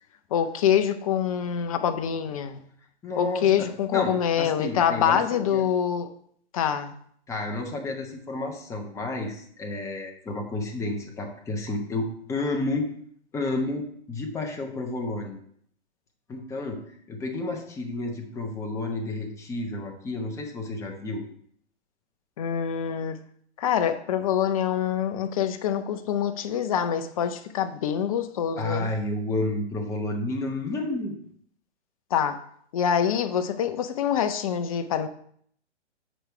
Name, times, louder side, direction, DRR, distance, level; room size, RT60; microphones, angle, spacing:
voice 1, 0.3-2.6 3.2-6.1 6.5-6.9 22.4-23.2 23.6-28.9 32.1-32.4 32.7-35.1, left 8 dB, 30° left, 9 dB, 0.6 m, -25 dB
voice 2, 3.0-5.6 7.3-12.9 13.3-15.4 16.3-16.8 17.1-21.2 28.6-31.1, left 2 dB, 10° left, 1 dB, 0.9 m, -31 dB
7.9 x 5.0 x 4.5 m, 0.63 s
figure-of-eight pair, 125°, 35 cm